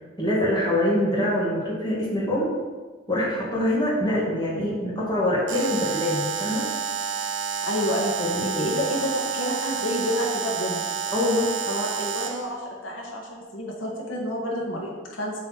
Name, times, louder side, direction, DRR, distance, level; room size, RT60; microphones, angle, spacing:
voice 1, 0.2-2.5 3.1-6.7 8.2-8.7 11.1-11.5, left 1 dB, 20° left, -6 dB, 2.1 m, -24 dB
Alarm, 5.5-12.5, right 6 dB, 75° right, 0.8 m, -29 dB
voice 2, 7.7-10.8 11.7-15.4, equal, 85° left, -2 dB, 1.8 m, -29 dB
8.0 x 4.3 x 6.3 m, 1.3 s
head